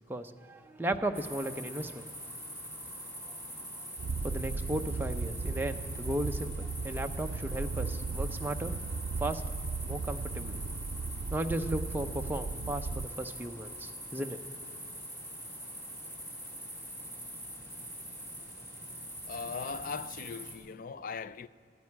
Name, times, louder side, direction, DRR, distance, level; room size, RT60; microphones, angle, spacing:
voice 1, 0.1-2.1 4.2-8.7 9.2-9.4 9.8-10.6 11.3-14.4, right 1 dB, 10° right, 0.6 m, -35 dB
sound 1, 1.1-20.5, equal, 15° left, 2.7 m, -43 dB
sound 2, 4.0-13.1, right 4 dB, 85° right, 0.4 m, -36 dB
voice 2, 19.3-21.5, left 5 dB, 50° left, 0.4 m, -39 dB
14.0 x 9.1 x 9.7 m
head